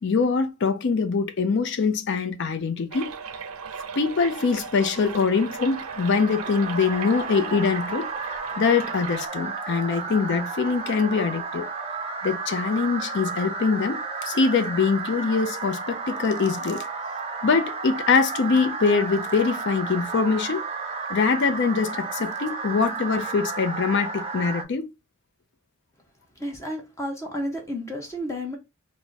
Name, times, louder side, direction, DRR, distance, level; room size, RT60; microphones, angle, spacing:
voice 1, 0.0-3.1 4.0-8.1 8.6-11.7 12.2-16.8 17.4-20.6 21.1-24.9, left 5 dB, 55° left, 0.4 m, -23 dB
sound 1, 2.9-9.3, right 6 dB, 85° right, 0.5 m, -38 dB
sound 2, 5.3-24.6, right 4 dB, 30° right, 0.5 m, -33 dB
voice 2, 26.4-28.6, equal, 15° left, 0.7 m, -31 dB
3.4 x 2.1 x 4.0 m
head